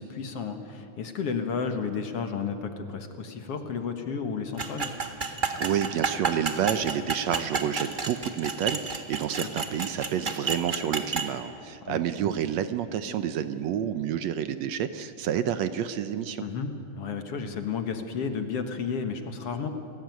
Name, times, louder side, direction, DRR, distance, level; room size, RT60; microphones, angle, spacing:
voice 1, 0.0-4.9 9.4-9.6 11.8-12.0 16.4-19.7, left 5 dB, 55° left, 7 dB, 2.3 m, -32 dB
sound 1, 4.6-11.3, right 4 dB, 30° right, 0.9 m, -31 dB
voice 2, 5.6-16.4, right 9 dB, 70° right, 11 dB, 1.9 m, -29 dB
30.0 x 19.5 x 9.4 m, 2.6 s
omnidirectional pair, 3.4 m